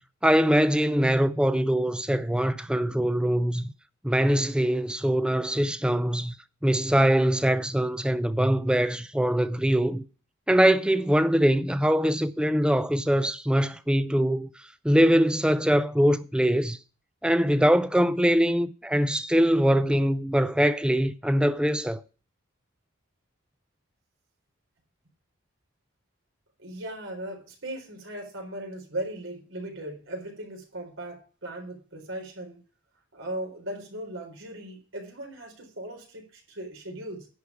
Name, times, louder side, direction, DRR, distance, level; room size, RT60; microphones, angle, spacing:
voice 1, 0.2-3.7 4.0-6.4 6.6-10.0 10.5-14.5 14.8-16.8 17.2-22.0, equal, 5° right, 0.5 m, -23 dB
voice 2, 26.6-32.6 33.1-37.3, right 1 dB, 85° right, 4.1 m, -38 dB
10.5 x 5.0 x 8.2 m
head